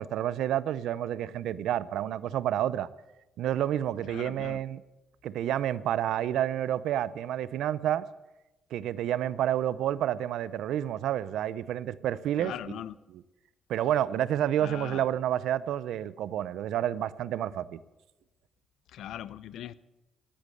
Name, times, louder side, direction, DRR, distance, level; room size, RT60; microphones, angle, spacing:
voice 1, 0.0-2.9 3.4-4.8 5.2-8.1 8.7-12.5 13.7-17.8, right 11 dB, 80° right, 0.6 m, -29 dB
voice 2, 4.1-4.6 12.4-13.0 14.6-15.1 18.9-19.8, left 11 dB, 80° left, 0.6 m, -40 dB
17.5 x 10.5 x 7.7 m
cardioid pair, 90°, 0 cm